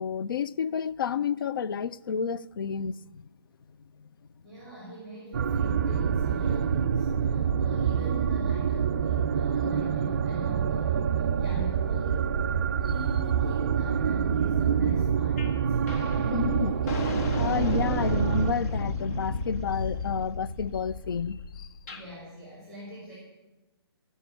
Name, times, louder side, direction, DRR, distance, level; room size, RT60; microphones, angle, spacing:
voice 1, 0.0-3.3 16.3-16.8 17.3-21.7, left 6 dB, 55° left, 0.4 m, -30 dB
voice 2, 4.4-12.3 12.8-15.9 21.9-23.1, equal, 5° left, 3.8 m, -43 dB
sound 1, 5.3-18.5, right 7 dB, 35° right, 0.4 m, -26 dB
sound 2, 15.4-15.6 15.9-22.1, left 3 dB, 40° left, 1.4 m, -34 dB
14.0 x 5.4 x 9.3 m
figure-of-eight pair, 140°, 13 cm